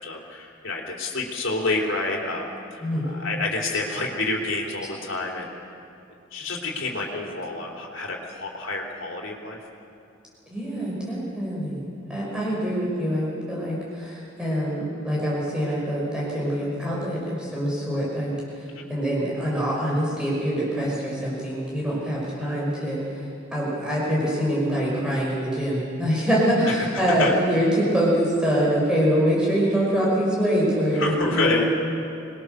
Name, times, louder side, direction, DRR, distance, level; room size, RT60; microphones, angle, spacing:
voice 1, 0.0-5.5 6.3-9.6 18.7-18.9 26.6-27.3 30.9-31.7, left 2 dB, 75° left, -1 dB, 3.6 m, -28 dB
voice 2, 2.8-3.1 10.5-18.3 18.6-18.7 18.9-23.2 23.5-31.6, equal, 5° right, -6 dB, 5.7 m, -24 dB
26.5 x 21.5 x 6.7 m, 2.6 s
head